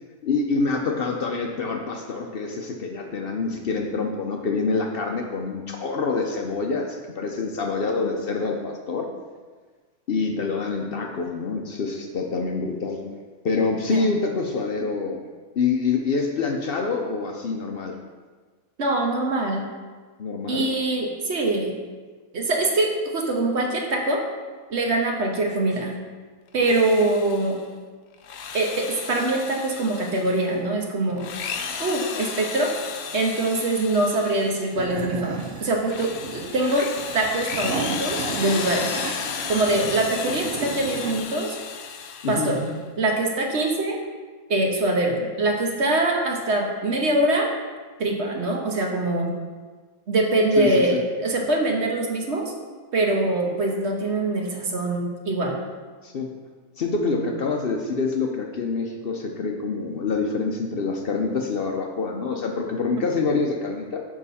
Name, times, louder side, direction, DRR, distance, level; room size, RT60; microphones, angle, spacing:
voice 1, 0.2-9.1 10.1-13.0 13.4-15.2 15.6-18.0 20.2-20.7 42.2-42.5 50.6-51.0 56.0-56.3 56.8-64.0, left 4 dB, 55° left, 2 dB, 0.6 m, -26 dB
voice 2, 18.8-19.6 20.5-21.7 22.3-24.2 24.7-25.9 26.5-27.6 28.5-31.3 31.8-32.7 33.1-36.9 37.1-39.0 39.5-41.6 42.3-42.7 43.0-44.0 44.5-47.5 48.0-49.3 50.1-52.5 52.9-55.6 57.1-57.2, right 2 dB, 50° right, 1 dB, 1.2 m, -23 dB
Drill, 26.5-27.6 28.1-30.5 31.1-34.8 35.3-42.8, left 6 dB, 75° left, 1.1 m, -34 dB
sound 1, 34.7-41.2, right 5 dB, 65° right, 0.6 m, -34 dB
7.2 x 5.7 x 4.1 m, 1.4 s
omnidirectional pair, 1.6 m